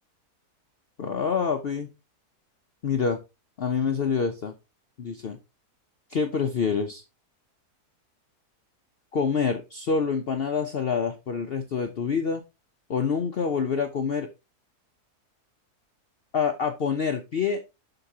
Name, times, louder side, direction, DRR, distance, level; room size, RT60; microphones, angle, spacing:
voice 1, 1.0-1.9 2.8-3.2 3.6-4.5 5.0-5.4 6.1-7.0 9.1-12.4 12.9-14.3 16.3-17.6, left 6 dB, 60° left, 6 dB, 0.6 m, -26 dB
7.8 x 6.1 x 2.7 m, 0.26 s
omnidirectional pair, 1.7 m